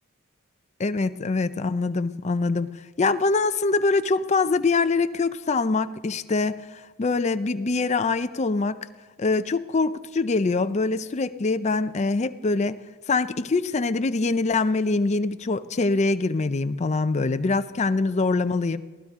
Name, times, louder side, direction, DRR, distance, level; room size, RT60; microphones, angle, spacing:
voice 1, 0.8-2.7 3.0-8.9 9.2-12.8 13.1-18.8, left 3 dB, 30° left, 11 dB, 0.4 m, -24 dB
23.0 x 16.0 x 3.6 m, 1.3 s
head